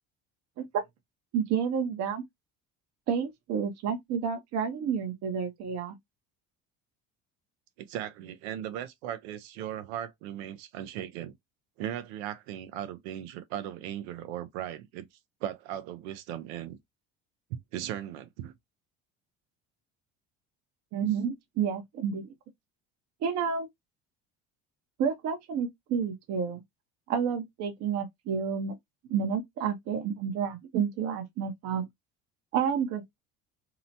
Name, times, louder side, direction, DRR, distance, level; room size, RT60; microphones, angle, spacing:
voice 1, 1.3-2.2 3.1-6.0 20.9-22.3 23.2-23.7 25.0-26.6 27.1-28.8 29.1-31.8 32.5-33.2, right 7 dB, 55° right, 0.8 m, -30 dB
voice 2, 7.8-11.3 11.8-15.1 15.4-16.8 17.5-18.5, right 11 dB, 85° right, 0.6 m, -37 dB
2.8 x 2.1 x 2.7 m
supercardioid pair, 90°, 31 cm